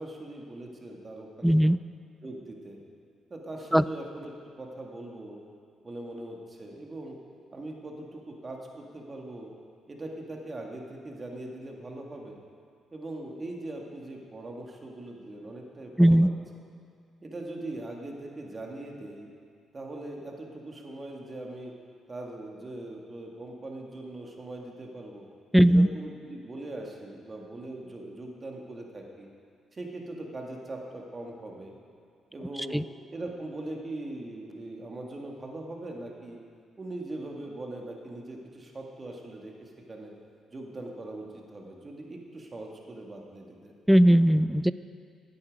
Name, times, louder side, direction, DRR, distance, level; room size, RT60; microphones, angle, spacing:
voice 1, 0.0-1.6 2.2-2.8 3.3-4.3 4.6-5.4 5.8-7.2 7.5-9.5 9.9-12.4 12.9-16.3 17.2-19.3 19.7-21.7 22.1-25.3 25.6-29.3 29.7-31.8 32.3-32.8 33.1-36.4 36.8-40.1 40.5-43.7, right 2 dB, 30° right, 0 dB, 1.7 m, -41 dB
voice 2, 1.4-1.8 3.7-3.8 16.0-16.3 25.5-25.9 32.7-32.8 43.9-44.7, equal, ahead, 15 dB, 0.3 m, -18 dB
14.5 x 8.7 x 5.2 m, 2.2 s
cardioid pair, 90°, 0 cm